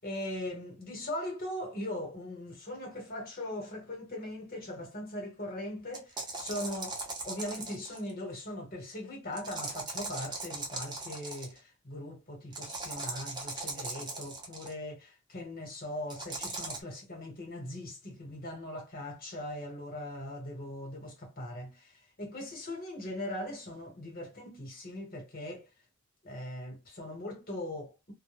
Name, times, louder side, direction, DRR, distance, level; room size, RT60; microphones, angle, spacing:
voice 1, 0.0-25.7 26.2-28.1, left 1 dB, 50° left, 1.2 m, -40 dB
sound 1, 5.9-8.1 9.4-11.6 12.5-14.7 16.1-16.8, right 3 dB, 20° right, 0.7 m, -39 dB
2.3 x 2.1 x 3.0 m
head